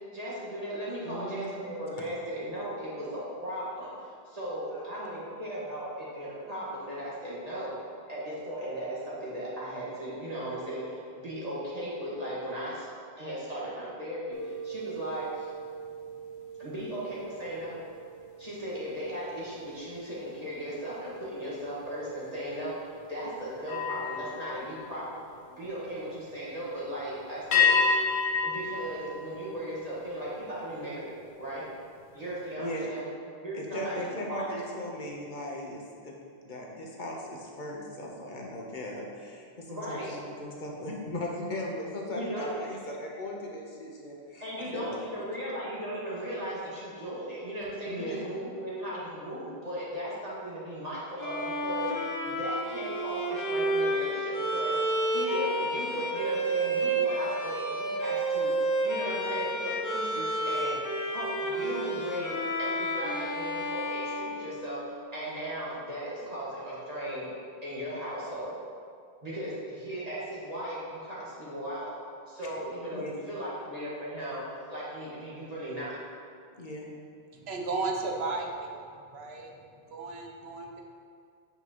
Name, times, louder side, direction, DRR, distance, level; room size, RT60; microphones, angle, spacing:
voice 1, 0.1-7.7 8.1-12.9 13.2-15.5 16.6-17.8 18.4-25.2 25.5-27.7 28.4-31.1 31.4-31.7 32.1-33.0 33.4-34.5 39.7-40.1 42.0-42.6 44.4-51.9 52.2-60.8 61.1-67.3 67.6-68.5 69.2-71.9 72.3-76.0, right 1 dB, 35° right, -8 dB, 1.7 m, -37 dB
voice 2, 1.0-1.7 32.6-33.0 33.5-36.1 36.4-44.5 44.7-45.0 47.9-48.3 72.9-73.3 76.6-76.9, left 1 dB, 50° left, -1 dB, 1.1 m, -38 dB
sound 1, 14.3-19.9 20.3-20.6 23.6-25.8 27.5-30.1, left 5 dB, 90° left, 1.0 m, -32 dB
Bowed string instrument, 51.2-65.1, right 1 dB, 20° left, 0.6 m, -30 dB
voice 3, 77.3-78.8 79.1-79.5 79.9-80.8, right 3 dB, 75° right, 1 dB, 1.1 m, -34 dB
8.8 x 5.5 x 3.0 m, 2.2 s
omnidirectional pair, 1.1 m